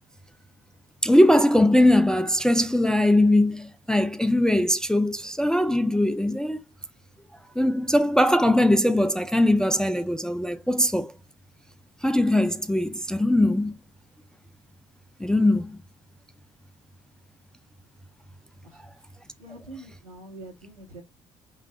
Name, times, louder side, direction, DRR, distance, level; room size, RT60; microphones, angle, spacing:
voice 1, 1.0-6.6 7.6-11.1 12.0-13.8 15.2-15.8, left 1 dB, 5° left, 0.4 m, -21 dB
voice 2, 19.4-21.0, right 2 dB, 80° right, 1.4 m, -44 dB
5.4 x 2.6 x 3.3 m
figure-of-eight pair, 50°, 18 cm